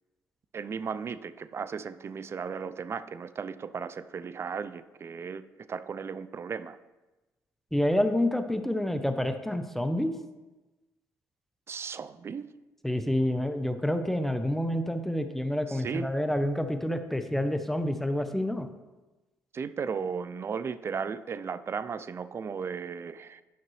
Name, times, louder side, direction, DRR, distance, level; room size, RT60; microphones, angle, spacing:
voice 1, 0.5-5.4 5.7-6.8 11.7-12.5 15.7-16.1 19.5-23.4, right 6 dB, 45° right, 15 dB, 0.4 m, -35 dB
voice 2, 7.7-10.1 12.8-18.7, left 1 dB, 5° left, 8 dB, 0.7 m, -28 dB
10.0 x 5.9 x 3.1 m, 1.1 s
cardioid pair, 80°, 6 cm